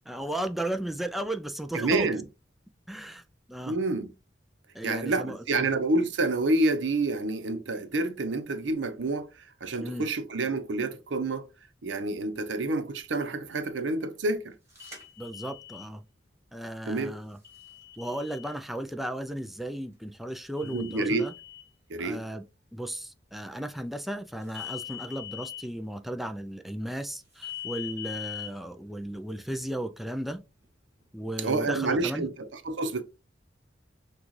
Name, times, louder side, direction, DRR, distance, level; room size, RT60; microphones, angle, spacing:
voice 1, 0.0-2.1 2.9-3.2 3.5-3.8 4.7-5.7 9.8-10.1 15.2-16.0 16.5-17.4 18.0-21.3 22.0-22.5 22.7-30.4 31.1-32.3, right 1 dB, ahead, 0.3 m, -35 dB
voice 2, 1.7-2.2 3.7-4.1 4.8-9.3 9.6-11.5 11.8-14.5 16.9-17.1 20.6-21.3 21.9-22.2 31.4-33.0, right 2 dB, 85° right, 0.7 m, -28 dB
sound 1, 14.8-15.9 17.4-18.5 20.6-21.6 24.5-25.6 27.4-28.5, left 11 dB, 15° right, 2.2 m, -41 dB
6.2 x 2.4 x 3.1 m
head